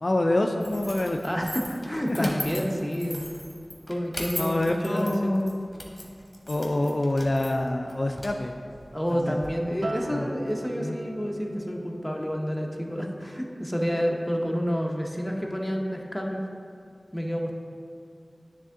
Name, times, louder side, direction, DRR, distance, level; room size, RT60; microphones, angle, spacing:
voice 1, 0.0-1.2 2.1-2.4 4.4-5.7 6.5-8.5 9.1-9.4 10.1-10.3 10.8-11.0, left 1 dB, 55° left, 3 dB, 0.3 m, -26 dB
sound 1, 0.6-9.5, left 1 dB, 25° left, 1.1 m, -40 dB
voice 2, 1.2-3.2 3.9-4.6 4.8-5.5 8.9-16.4 17.1-17.5, equal, 5° left, 0 dB, 0.7 m, -29 dB
Acoustic guitar, 9.8-14.2 14.6-15.0, right 1 dB, 65° right, 0.3 m, -40 dB
9.1 x 3.6 x 3.7 m, 2.4 s
wide cardioid pair, 55°, 0 cm